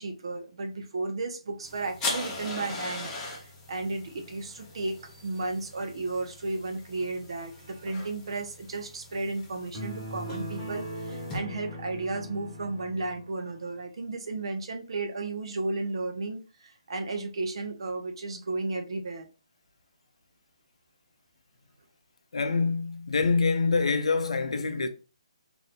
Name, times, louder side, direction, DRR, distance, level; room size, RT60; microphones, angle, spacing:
voice 1, 0.0-19.3, right 3 dB, 55° right, 0.6 m, -34 dB
sound 1, 1.6-11.4, left 2 dB, 15° left, 0.7 m, -40 dB
sound 2, 9.7-13.3, equal, 10° right, 1.2 m, -39 dB
voice 2, 22.3-24.9, left 4 dB, 70° left, 0.5 m, -25 dB
2.7 x 2.6 x 3.4 m
hypercardioid pair, 170°, 3 cm